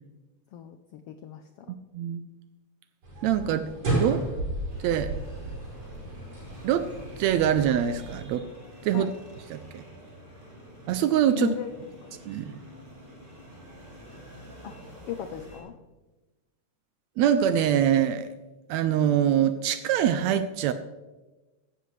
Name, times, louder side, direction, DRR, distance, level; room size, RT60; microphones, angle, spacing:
voice 1, 0.5-1.7 8.9-9.1 11.3-11.7 12.0-12.1 14.6-14.7 15.1-15.8, left 9 dB, 85° left, 8 dB, 1.3 m, -36 dB
sound 1, 3.0-8.2, right 1 dB, 55° right, 5.2 m, -33 dB
voice 2, 3.2-4.2 4.8-5.1 6.6-6.9 7.2-8.5 8.8-9.1 9.5-9.8 10.9-11.5 12.3-12.5 17.2-18.3 18.7-20.7, right 10 dB, 80° right, 11 dB, 1.6 m, -24 dB
sound 2, 4.7-15.6, equal, 15° right, 3.9 m, -47 dB
15.5 x 11.5 x 3.2 m, 1.1 s
omnidirectional pair, 3.5 m